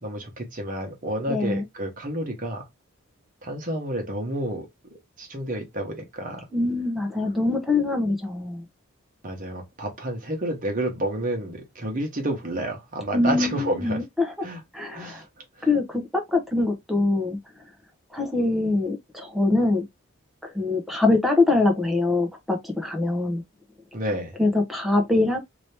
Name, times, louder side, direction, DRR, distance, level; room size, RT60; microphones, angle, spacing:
voice 1, 0.0-2.7 3.4-4.7 5.2-6.5 9.2-14.0 14.4-14.6 14.9-15.3 15.6-15.7 23.9-24.4, right 1 dB, 40° right, 1.1 m, -30 dB
voice 2, 1.3-1.6 6.5-8.6 13.1-14.3 14.7-15.2 15.6-17.4 18.1-19.8 20.5-23.4 24.4-25.4, left 2 dB, ahead, 0.8 m, -23 dB
2.9 x 2.8 x 3.2 m
head